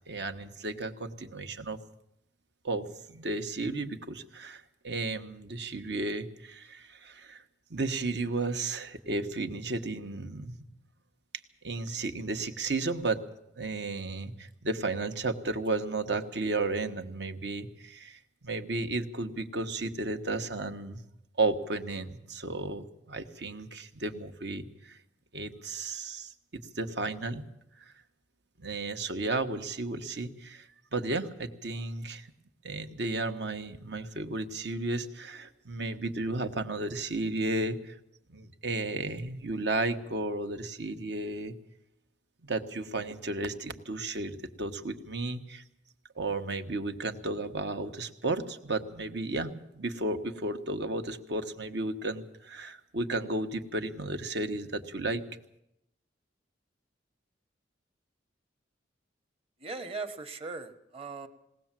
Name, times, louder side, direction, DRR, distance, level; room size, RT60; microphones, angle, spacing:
voice 1, 0.1-1.8 2.6-7.4 7.7-10.6 11.6-13.2 13.6-21.0 21.4-25.0 25.3-27.4 28.6-32.3 32.6-38.0 38.3-41.5 42.4-45.6 46.1-55.2, right 2 dB, 65° right, 7 dB, 1.4 m, -33 dB
voice 2, 59.6-61.3, right 3 dB, 30° right, 8 dB, 1.5 m, -39 dB
20.5 x 18.0 x 7.6 m, 0.81 s
head